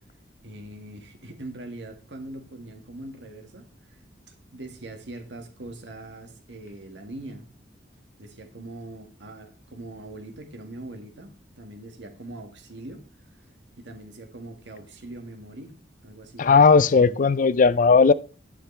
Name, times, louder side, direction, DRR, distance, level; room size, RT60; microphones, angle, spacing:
voice 1, 0.4-4.0 4.3-7.5 8.2-13.0 13.8-15.7 16.0-17.3, right 1 dB, 70° right, 1.7 m, -42 dB
voice 2, 16.4-18.1, left 5 dB, 45° left, 0.4 m, -16 dB
10.0 x 7.5 x 3.3 m
head